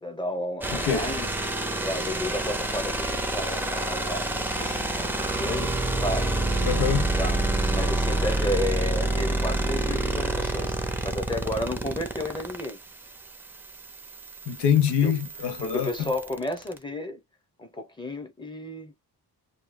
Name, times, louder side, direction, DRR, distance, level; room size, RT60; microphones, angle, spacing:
voice 1, 0.0-1.3 1.8-6.3 7.2-7.4 7.7-12.8 15.0-15.2 15.6-17.2 17.6-18.9, left 1 dB, 10° left, 1.0 m, -32 dB
sound 1, 0.6-16.8, right 2 dB, 5° right, 0.6 m, -28 dB
voice 2, 0.7-1.1 6.6-7.1 14.5-16.1, left 8 dB, 90° left, 0.9 m, -25 dB
2.4 x 2.2 x 3.4 m
wide cardioid pair, 125°, 39 cm